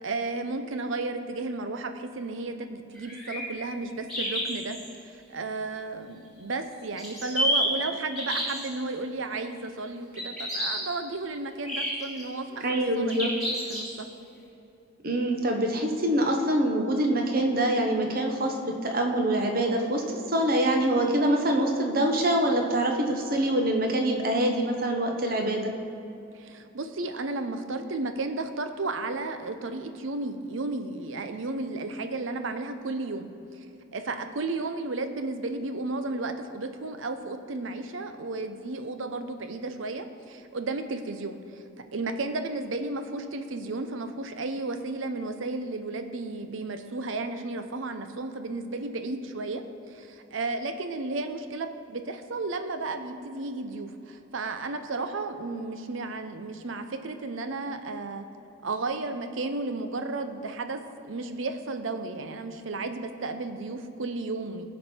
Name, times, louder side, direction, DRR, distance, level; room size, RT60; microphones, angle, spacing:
voice 1, 0.0-4.8 5.3-14.1 26.3-33.7 33.9-41.6 41.9-58.2 58.6-64.6, right 3 dB, 70° right, 8 dB, 0.7 m, -33 dB
sound 1, 3.0-3.4 4.1-4.9 7.0-7.7 8.1-8.7 10.2-10.8 11.7-12.2 13.1-14.0, equal, ahead, 2.4 m, -29 dB
voice 2, 12.6-13.3 15.0-20.0 20.3-25.7, right 1 dB, 45° right, 3 dB, 1.0 m, -25 dB
15.5 x 5.3 x 4.4 m, 2.8 s
head